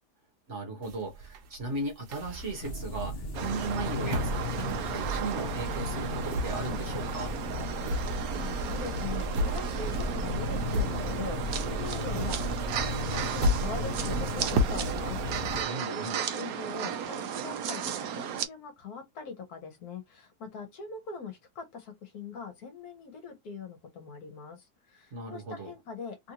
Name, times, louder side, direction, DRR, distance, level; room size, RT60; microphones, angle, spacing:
voice 1, 0.5-7.3 15.6-16.2 25.1-25.7, right 3 dB, 50° right, 1.4 m, -37 dB
sound 1, 0.8-3.0 3.4-5.5 5.8-11.5 11.8-15.2, left 1 dB, 85° right, 1.3 m, -34 dB
sound 2, 2.6-15.6, left 2 dB, 50° left, 0.8 m, -35 dB
sound 3, 3.3-18.5, right 8 dB, 70° right, 1.0 m, -35 dB
voice 2, 8.1-26.3, left 5 dB, 70° left, 1.5 m, -42 dB
3.4 x 2.5 x 2.8 m
omnidirectional pair, 1.7 m